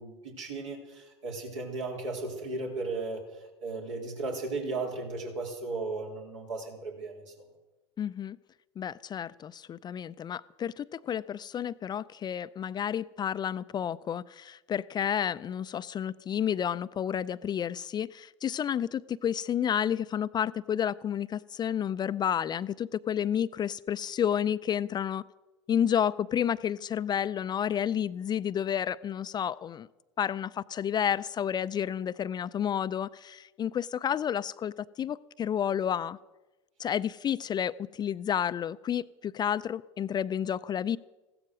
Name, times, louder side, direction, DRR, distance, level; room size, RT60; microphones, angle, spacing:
voice 1, 0.0-3.2 3.6-7.3, right 3 dB, 75° right, 3.6 m, -35 dB
voice 2, 8.0-8.4 8.8-25.2 25.7-29.9 30.2-34.7 35.0-36.2 36.8-41.0, left 9 dB, 25° left, 0.4 m, -30 dB
15.5 x 13.0 x 6.2 m
hypercardioid pair, 80°, 16 cm